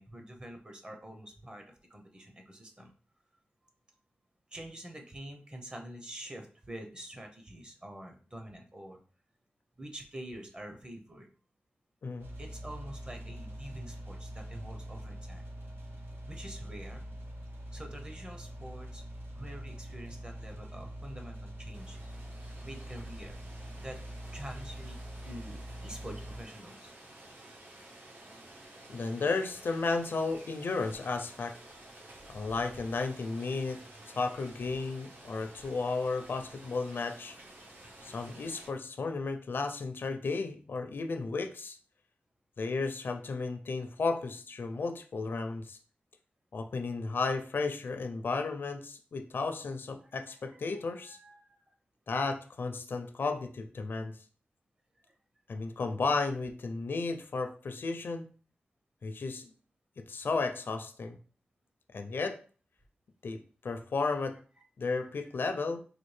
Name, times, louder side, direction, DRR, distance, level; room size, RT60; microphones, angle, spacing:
voice 1, 0.0-2.9 4.5-9.0 9.8-11.3 12.4-15.4 16.3-17.1 17.7-19.0 19.3-22.0 22.6-23.3 23.8-24.0 24.3-25.0 25.2-26.9 50.3-50.6 51.0-51.6 55.1-55.2 64.6-64.7 65.0-65.1, right 1 dB, 25° right, 3 dB, 0.7 m, -46 dB
sound 1, 12.2-26.4, right 1 dB, 90° right, 0.7 m, -44 dB
Rain, 21.7-38.7, right 1 dB, 60° right, 0.8 m, -52 dB
voice 2, 28.9-31.5 32.3-33.8 34.1-37.4 38.0-41.8 42.6-45.8 46.5-51.2 52.1-54.1 55.5-58.2 59.0-59.5 60.0-61.2 61.9-62.4 63.2-64.3 64.8-65.8, left 3 dB, 65° left, 6 dB, 0.5 m, -33 dB
4.2 x 2.4 x 3.2 m, 0.40 s
wide cardioid pair, 105°, 4 cm